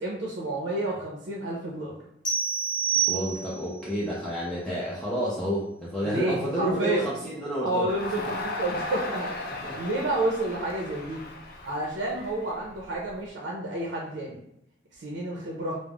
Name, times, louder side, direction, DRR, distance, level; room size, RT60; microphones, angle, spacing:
voice 1, 0.0-2.0 6.0-7.1 7.6-11.2 11.6-14.4 14.9-15.8, right 1 dB, 70° right, -3 dB, 0.5 m, -30 dB
sound 1, 2.2-3.8, right 7 dB, 25° left, 0.8 m, -27 dB
voice 2, 3.1-7.9 9.6-9.8, equal, 5° left, -8 dB, 0.5 m, -30 dB
Crowd, 7.9-13.1, left 2 dB, 55° left, 0.5 m, -36 dB
2.3 x 2.0 x 3.5 m, 0.79 s
head